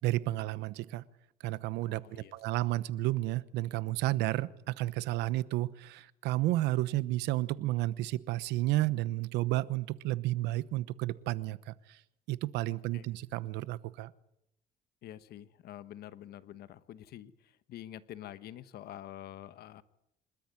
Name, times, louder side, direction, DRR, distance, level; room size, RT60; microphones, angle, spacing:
voice 1, 0.0-1.0 1.4-12.0 12.3-14.1, right 16 dB, 90° right, 17 dB, 1.0 m, -32 dB
voice 2, 1.8-2.3 12.7-13.1 15.0-19.8, left 12 dB, 70° left, 13 dB, 1.2 m, -47 dB
27.0 x 13.5 x 9.7 m, 0.82 s
cardioid pair, 110°, 17 cm